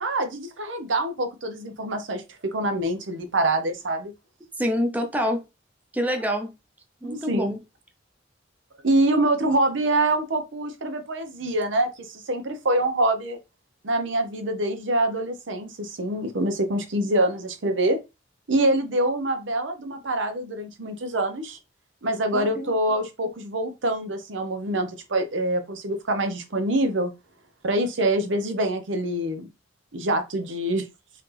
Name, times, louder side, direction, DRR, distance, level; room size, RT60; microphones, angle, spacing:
voice 1, 0.0-4.1 7.0-7.6 8.8-13.4 13.8-18.0 18.5-21.6 22.0-27.1 27.6-29.5 29.9-30.8, right 1 dB, 85° right, 0.8 m, -25 dB
voice 2, 4.6-5.4 5.9-6.5 7.0-7.6 22.3-22.7, equal, 10° right, 0.6 m, -26 dB
4.0 x 2.8 x 3.3 m
head